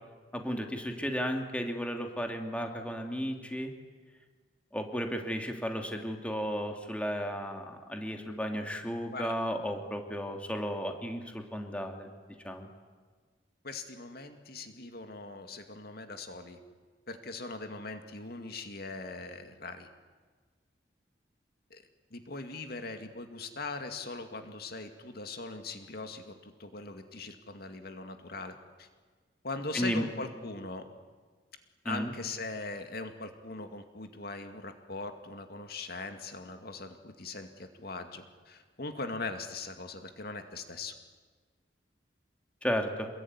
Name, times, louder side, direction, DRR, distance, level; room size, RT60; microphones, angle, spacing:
voice 1, 0.3-3.7 4.7-12.1 12.4-12.7 29.7-30.0 31.8-32.1 42.6-43.1, equal, 5° left, 3 dB, 2.6 m, -34 dB
voice 2, 13.6-16.6 17.1-19.9 21.7-21.8 22.1-28.9 29.4-30.8 31.8-40.9, left 3 dB, 60° left, 6 dB, 2.3 m, -40 dB
27.5 x 22.0 x 9.7 m, 1.5 s
head